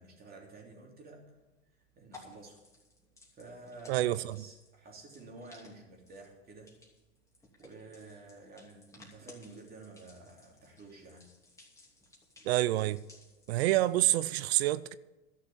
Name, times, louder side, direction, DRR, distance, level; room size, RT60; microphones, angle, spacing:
voice 1, 0.0-1.4 1.9-2.6 3.3-6.8 7.6-11.4, right 3 dB, 25° right, 3.3 m, -51 dB
sound 1, 1.0-14.3, left 2 dB, 10° left, 2.8 m, -59 dB
voice 2, 3.9-4.4 12.5-13.0 13.5-14.9, right 15 dB, 60° right, 0.5 m, -27 dB
12.5 x 6.6 x 8.6 m
hypercardioid pair, 110°, 36 cm